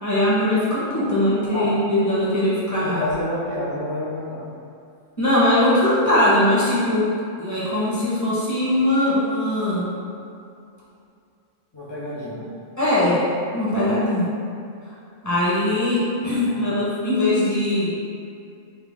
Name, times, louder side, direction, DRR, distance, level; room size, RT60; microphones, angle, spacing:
voice 1, 0.0-3.1 5.2-7.1 7.4-9.9 12.3-12.4 12.8-13.2 13.5-14.3 15.2-17.9, left 1 dB, 15° left, -10 dB, 1.0 m, -21 dB
voice 2, 2.8-4.5 11.7-12.4 16.5-16.7, left 1 dB, 35° left, -12 dB, 0.4 m, -29 dB
5.5 x 2.2 x 3.4 m, 2.5 s
omnidirectional pair, 1.5 m